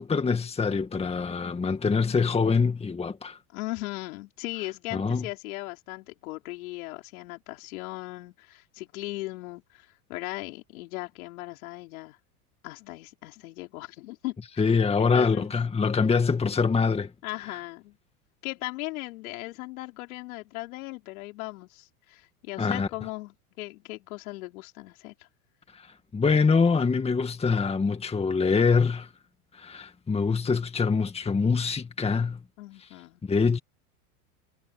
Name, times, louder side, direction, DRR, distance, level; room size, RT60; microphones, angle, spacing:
voice 1, 0.0-3.4 4.9-5.3 14.6-17.1 17.5-17.6 22.6-22.9 25.7-29.1 29.5-32.4 33.3-33.6, left 5 dB, 15° left, 1.9 m, -24 dB
voice 2, 3.5-12.2 12.6-14.4 15.0-15.5 17.2-18.0 18.4-25.3 32.6-33.2, left 20 dB, 70° left, 5.4 m, -38 dB
hypercardioid pair, 115°, 45 cm